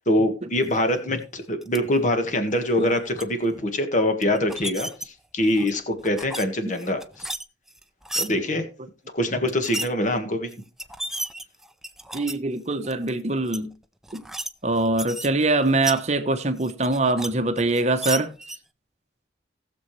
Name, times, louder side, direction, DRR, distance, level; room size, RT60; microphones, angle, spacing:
voice 1, 0.0-7.0 8.2-8.6 9.1-10.5, left 1 dB, 40° left, 1.7 m, -24 dB
sound 1, 1.6-1.8 2.7-3.2 4.2-5.1 5.5-6.4 6.7-8.3 9.5-9.9 10.5-10.6 10.8-12.4 12.8-13.1 13.5-13.6 14.0-14.5 14.8-16.0 16.6-17.3 17.6-18.6, right 1 dB, ahead, 0.5 m, -33 dB
voice 2, 12.1-13.7 14.1-14.2 14.6-18.3, right 2 dB, 35° right, 1.0 m, -23 dB
18.5 x 7.0 x 3.3 m
head